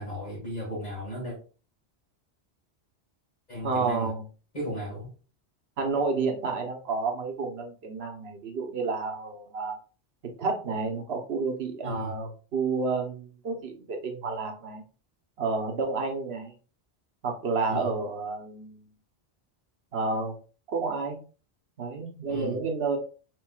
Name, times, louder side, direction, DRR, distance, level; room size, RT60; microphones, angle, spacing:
voice 1, 0.0-1.4 3.5-4.1 4.5-5.1 11.8-12.1 17.7-17.9 22.3-22.6, equal, 40° left, -8 dB, 2.0 m, -35 dB
voice 2, 3.6-4.2 5.8-9.8 10.4-14.8 15.4-16.5 17.2-18.9 19.9-20.4 20.7-21.2 21.8-23.0, right 4 dB, 65° right, 3 dB, 1.2 m, -30 dB
4.6 x 4.2 x 2.3 m, 0.37 s
omnidirectional pair, 1.1 m